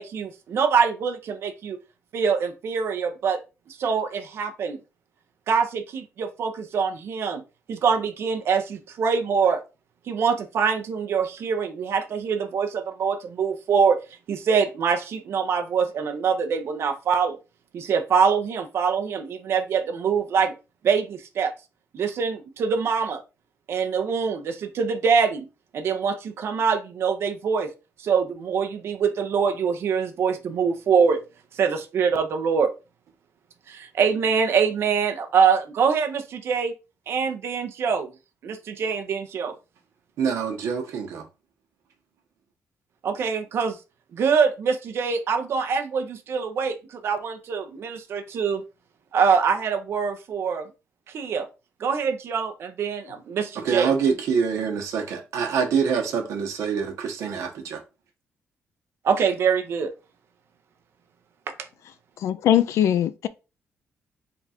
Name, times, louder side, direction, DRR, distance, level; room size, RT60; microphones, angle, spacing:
voice 1, 0.0-1.8 2.1-3.4 3.7-4.8 5.5-7.4 7.7-9.6 10.1-14.0 14.3-17.4 17.7-20.5 20.8-21.5 21.9-23.2 23.7-25.5 25.7-27.7 28.0-31.2 31.5-32.7 33.7-36.7 37.1-38.1 38.4-39.5 43.0-43.8 44.1-48.6 49.1-50.7 51.1-51.5 51.8-53.9 59.0-59.9, right 6 dB, 55° right, 0.6 m, -24 dB
voice 2, 40.2-41.2 53.6-57.8, right 6 dB, 85° right, 1.0 m, -25 dB
voice 3, 62.2-63.3, left 11 dB, 75° left, 0.3 m, -21 dB
3.5 x 2.4 x 4.2 m
wide cardioid pair, 170°, 5 cm